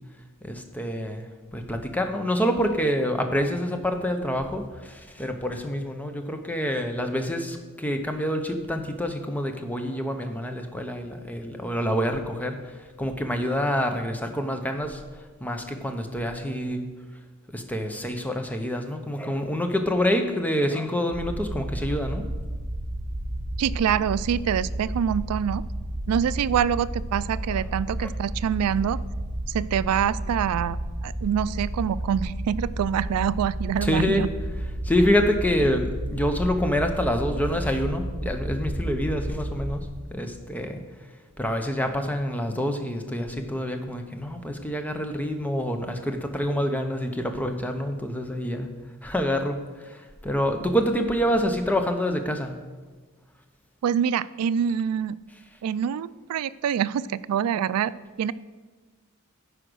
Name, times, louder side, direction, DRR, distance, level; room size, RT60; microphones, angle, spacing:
voice 1, 0.4-15.0 15.4-16.9 17.5-22.2 27.6-27.7 28.0-28.1 33.8-34.2 34.8-40.8 41.4-48.7 49.0-52.5, equal, 5° left, 6 dB, 0.7 m, -27 dB
sound 1, 21.1-39.8, right 1 dB, 20° right, 2.1 m, -32 dB
voice 2, 23.6-25.6 26.1-29.0 29.5-30.8 31.0-34.3 53.8-55.2 55.6-57.9 58.2-58.3, right 8 dB, 80° right, 19 dB, 0.3 m, -25 dB
9.9 x 4.9 x 6.2 m, 1.3 s
head